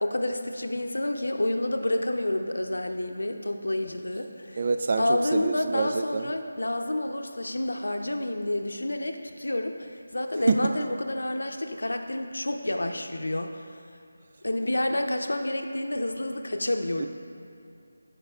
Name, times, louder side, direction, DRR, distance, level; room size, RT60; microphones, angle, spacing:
voice 1, 0.0-4.6 5.0-9.9 10.1-13.6 14.4-17.1, left 1 dB, 90° left, 5 dB, 0.7 m, -29 dB
voice 2, 4.6-6.3 10.5-10.7 17.0-17.1, right 4 dB, 40° right, 8 dB, 0.4 m, -26 dB
13.5 x 5.3 x 2.4 m, 2.7 s
figure-of-eight pair, 170°, 0 cm